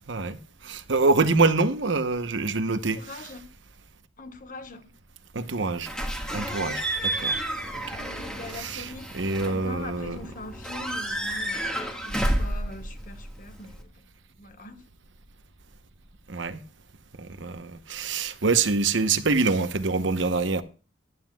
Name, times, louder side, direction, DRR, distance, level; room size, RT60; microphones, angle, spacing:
voice 1, 0.1-0.4 0.6-3.0 5.3-5.9 6.3-7.4 8.5-8.9 9.1-10.2 16.3-16.6 17.2-20.6, right 3 dB, 65° right, 0.9 m, -25 dB
voice 2, 2.9-3.5 4.2-4.9 6.6-6.8 8.0-13.9 14.4-14.9, left 2 dB, 40° left, 1.3 m, -42 dB
Slam / Squeak / Alarm, 5.8-13.8, right 1 dB, 5° left, 1.6 m, -31 dB
15.0 x 11.0 x 2.3 m
head